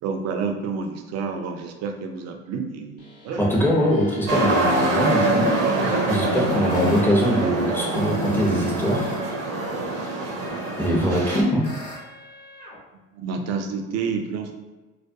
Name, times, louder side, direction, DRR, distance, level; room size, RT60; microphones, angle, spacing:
voice 1, 0.0-3.5 5.8-6.3 13.1-14.6, right 5 dB, 45° right, 5 dB, 0.4 m, -29 dB
sound 1, 3.0-9.2 9.5-12.8, equal, 80° left, 1.0 m, -37 dB
voice 2, 3.4-5.5 6.1-9.1 10.8-11.7, equal, 5° left, -2 dB, 0.6 m, -22 dB
sound 2, 4.3-11.4, right 2 dB, 75° right, 0.8 m, -24 dB
2.3 x 2.1 x 2.6 m, 1.2 s
hypercardioid pair, 70°, 38 cm